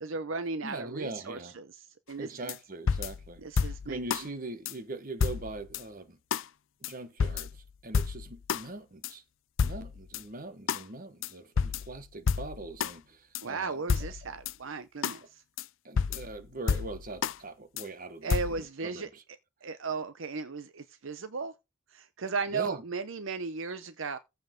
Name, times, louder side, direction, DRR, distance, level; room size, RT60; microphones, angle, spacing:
voice 1, 0.0-2.5 3.4-4.0 13.4-15.4 18.2-19.1 19.6-21.5 21.9-24.2, right 4 dB, 65° right, 0.7 m, -36 dB
voice 2, 0.6-1.6 2.2-6.2 6.8-9.2 9.6-13.8 15.8-18.3 18.6-19.2 22.5-22.8, right 2 dB, 40° right, 1.3 m, -41 dB
sound 1, 2.5-2.6 2.9-4.3 4.7-4.8 5.2-5.8 6.3-6.5 6.8-6.9 7.2-8.6 9.0-9.1 9.6-10.2 10.7-10.8 11.2-11.3 11.6-13.0 13.4-13.5 13.9-14.5 15.0-15.2 15.6-15.7 16.0-17.4 17.8-17.9 18.3-18.6, left 6 dB, 60° left, 0.4 m, -30 dB
14.5 x 5.5 x 3.8 m
head